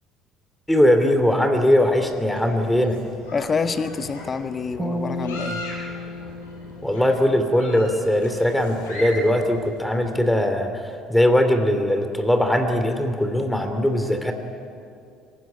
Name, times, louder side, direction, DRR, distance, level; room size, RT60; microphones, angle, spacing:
voice 1, 0.7-3.0 6.8-14.3, left 1 dB, 5° left, 6 dB, 3.0 m, -20 dB
sound 1, 1.7-10.4, left 1 dB, 80° left, 6.1 m, -39 dB
voice 2, 3.3-5.6, left 5 dB, 35° left, 9 dB, 1.6 m, -27 dB
sound 2, 4.8-8.1, left 1 dB, 25° right, 5.9 m, -33 dB
26.0 x 16.0 x 9.6 m, 2.5 s
hypercardioid pair, 55°, 0 cm